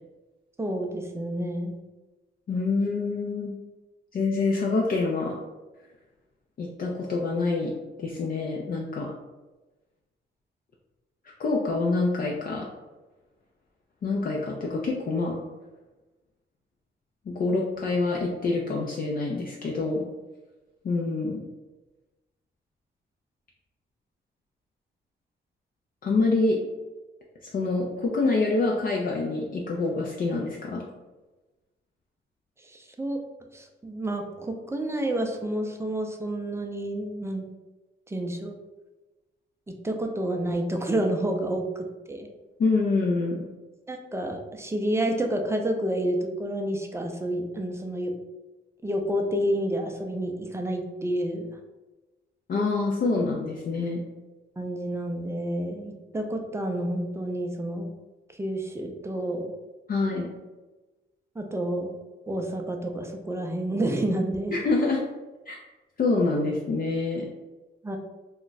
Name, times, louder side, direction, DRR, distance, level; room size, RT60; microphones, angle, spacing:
voice 1, 0.6-1.8 32.6-33.2 33.5-37.4 38.1-38.6 39.8-42.3 43.9-48.1 48.8-51.5 54.6-57.9 58.3-59.5 61.4-61.9 62.3-64.6 67.8-68.0, right 1 dB, 15° right, 3 dB, 0.4 m, -29 dB
voice 2, 2.5-3.5 4.1-5.4 6.6-7.7 8.0-9.1 11.4-12.7 14.0-15.4 17.3-20.0 20.8-21.4 26.0-26.6 27.4-30.8 42.6-43.5 52.5-54.0 59.9-60.3 64.5-65.0 65.5-65.6 66.0-67.3, left 3 dB, 45° left, -2 dB, 0.4 m, -26 dB
2.4 x 2.1 x 3.9 m, 1.1 s
cardioid pair, 85°, 20 cm